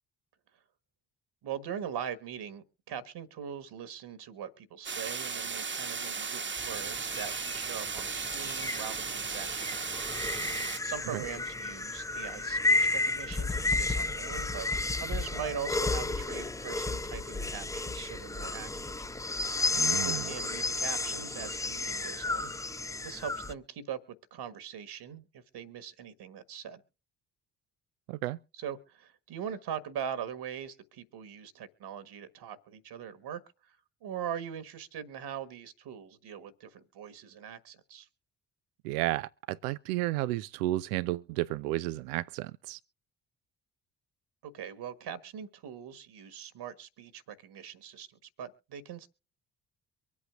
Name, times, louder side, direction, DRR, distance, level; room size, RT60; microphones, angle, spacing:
voice 1, 1.4-9.9 10.3-14.7 15.0-18.9 19.2-19.4 19.9-24.0 24.3-26.8 28.6-38.1 44.4-49.1, right 8 dB, 50° right, 1.5 m, -41 dB
sound 1, 4.8-10.8, right 5 dB, 25° right, 1.2 m, -36 dB
sound 2, 6.6-23.5, left 3 dB, 5° left, 0.5 m, -32 dB
voice 2, 19.7-20.3 28.1-28.4 38.8-42.8, right 17 dB, 70° right, 0.5 m, -32 dB
24.5 x 8.4 x 2.4 m
figure-of-eight pair, 40°, 49 cm